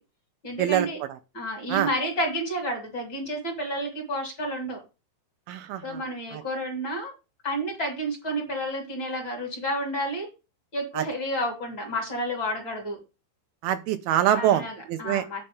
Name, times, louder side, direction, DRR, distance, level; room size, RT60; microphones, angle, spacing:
voice 1, 0.4-1.0 1.3-4.8 5.8-7.1 7.4-10.3 10.7-13.0 14.3-15.4, equal, 30° left, 3.4 m, -30 dB
voice 2, 5.5-6.0 6.3-6.4 11.0-11.1 13.6-15.2, right 11 dB, 80° right, 2.5 m, -24 dB
8.8 x 4.5 x 6.9 m
omnidirectional pair, 4.7 m